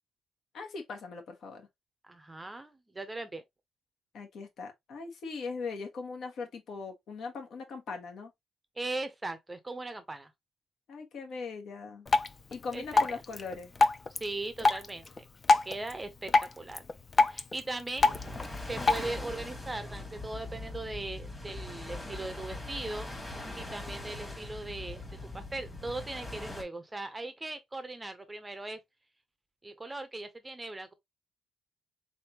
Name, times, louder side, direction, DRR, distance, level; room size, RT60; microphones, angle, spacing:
voice 1, 0.5-1.7 4.1-8.3 10.9-12.1 12.5-13.7, left 4 dB, 65° left, 1.5 m, -40 dB
voice 2, 2.0-3.4 8.8-10.3 12.7-12.8 13.1-13.2 14.2-16.8 17.3-18.2 18.7-23.1 23.6-25.0 25.3-28.8 29.6-30.9, right 2 dB, 15° right, 0.6 m, -39 dB
Drip, 12.1-19.1, left 3 dB, 25° left, 0.4 m, -29 dB
sound 1, 18.0-26.6, left 2 dB, 10° left, 1.4 m, -41 dB
3.8 x 3.5 x 2.9 m
cardioid pair, 150°, 0 cm